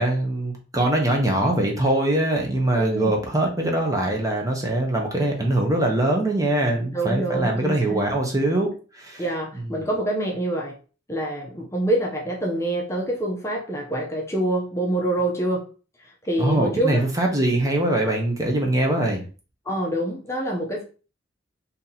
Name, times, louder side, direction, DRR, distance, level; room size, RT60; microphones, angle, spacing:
voice 1, 0.0-8.7 8.9-9.2 9.7-9.9 16.4-19.2, right 1 dB, 20° right, 1 dB, 0.7 m, -22 dB
voice 2, 2.8-3.1 6.9-8.1 9.2-10.8 11.1-15.7 16.0-17.0 19.7-20.8, right 1 dB, 15° left, -1 dB, 0.6 m, -26 dB
2.9 x 2.8 x 3.9 m, 0.36 s
head